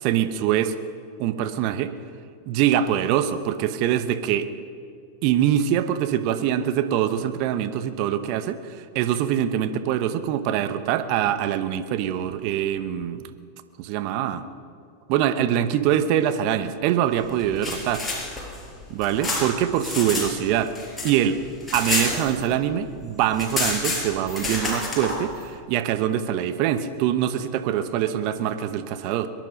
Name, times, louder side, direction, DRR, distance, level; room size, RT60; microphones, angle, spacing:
voice 1, 0.0-0.7 1.2-1.9 2.5-4.5 5.2-13.2 13.8-14.4 15.1-18.0 18.9-20.7 21.0-21.4 21.7-29.3, right 10 dB, 55° right, 11 dB, 1.0 m, -24 dB
sound 1, 17.4-20.3 20.6-22.7 23.0-23.1 23.3-25.1, left 2 dB, 10° left, 5.2 m, -28 dB
22.5 x 11.0 x 5.3 m, 2.4 s
hypercardioid pair, 95°, 0 cm